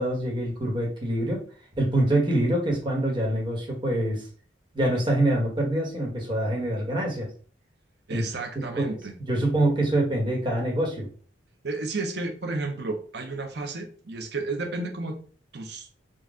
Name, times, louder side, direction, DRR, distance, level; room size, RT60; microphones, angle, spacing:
voice 1, 0.0-1.4 1.8-4.2 4.7-7.3 8.1-8.2 8.8-9.0 9.3-11.1, right 1 dB, 25° right, -2 dB, 1.2 m, -25 dB
voice 2, 8.1-9.1 11.6-15.2 15.5-15.9, right 3 dB, 60° right, 4 dB, 0.8 m, -32 dB
4.0 x 2.3 x 3.6 m, 0.41 s
head